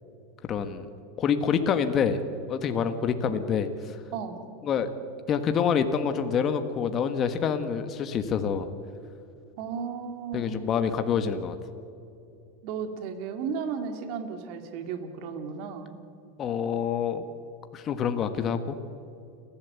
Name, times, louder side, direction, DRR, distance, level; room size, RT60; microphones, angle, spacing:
voice 1, 0.4-0.9 1.2-2.2 2.5-4.0 4.6-4.9 5.3-8.7 10.3-11.6 16.4-17.2 17.7-18.8, left 7 dB, 35° left, 8 dB, 1.4 m, -27 dB
voice 2, 4.1-4.4 9.6-10.7 12.6-15.9, right 6 dB, 60° right, 6 dB, 2.4 m, -34 dB
30.0 x 12.0 x 8.4 m, 2.6 s
supercardioid pair, 120°, 0 cm